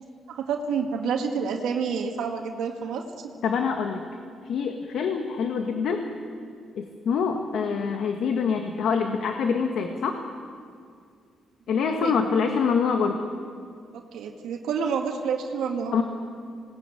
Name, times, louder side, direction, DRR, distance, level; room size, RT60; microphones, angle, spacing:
voice 1, 0.0-3.0 12.0-12.1 13.9-16.0, right 6 dB, 85° right, 2 dB, 1.8 m, -29 dB
voice 2, 3.4-4.0 4.4-6.1 6.8-10.2 11.7-13.2 15.9-16.0, left 6 dB, 70° left, 4 dB, 1.6 m, -25 dB
20.5 x 18.5 x 9.2 m, 2.2 s
cardioid pair, 85°, 0 cm